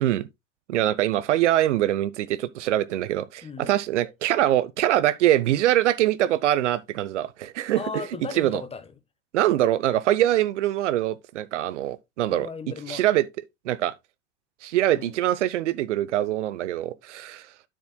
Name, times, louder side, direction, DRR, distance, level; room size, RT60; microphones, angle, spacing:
voice 1, 0.7-8.0 8.3-8.6 9.3-12.5 12.9-13.3 13.6-13.9 14.6-17.5, right 13 dB, 70° right, 0.7 m, -23 dB
voice 2, 3.4-3.8 7.7-8.9 12.3-13.0 14.9-15.2, left 5 dB, 15° left, 1.1 m, -36 dB
9.4 x 7.4 x 2.2 m
hypercardioid pair, 95°, 37 cm